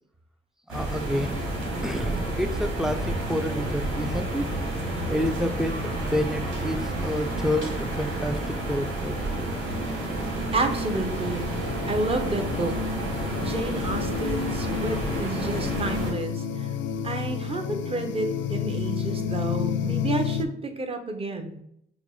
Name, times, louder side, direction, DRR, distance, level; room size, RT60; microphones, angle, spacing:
voice 1, 0.7-1.5 1.8-4.4 5.1-9.2 10.3-10.5, equal, 5° right, 10 dB, 0.4 m, -29 dB
sound 1, 0.7-16.1, right 1 dB, 70° right, 1.8 m, -30 dB
sound 2, 9.5-20.4, left 7 dB, 70° left, 0.5 m, -31 dB
voice 2, 10.5-11.5 11.9-12.7 13.4-16.7 17.0-21.6, right 2 dB, 30° right, 5 dB, 0.8 m, -30 dB
5.9 x 2.1 x 3.8 m, 0.73 s
cardioid pair, 90°, 20 cm